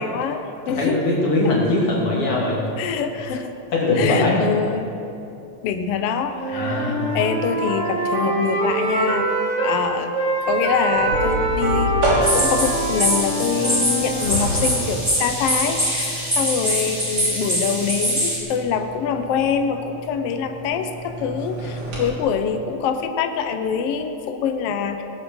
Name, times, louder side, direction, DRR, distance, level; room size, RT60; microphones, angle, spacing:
voice 1, 0.0-1.2 2.8-3.5 4.0-4.9 5.6-9.3 9.6-10.1 10.5-11.9 12.3-25.0, left 6 dB, 90° left, 7 dB, 1.3 m, -25 dB
voice 2, 0.7-2.6 3.7-4.4 6.5-7.2, left 2 dB, 45° left, -4 dB, 3.3 m, -21 dB
Wind instrument woodwind instrument, 6.3-9.8 10.1-14.3, right 2 dB, 25° right, 2.4 m, -24 dB
sound 1, 10.9-22.1, right 1 dB, 75° right, 5.0 m, -29 dB
sound 2, 12.2-18.4, equal, 5° right, 2.7 m, -23 dB
19.0 x 8.3 x 6.4 m, 2.8 s
omnidirectional pair, 3.8 m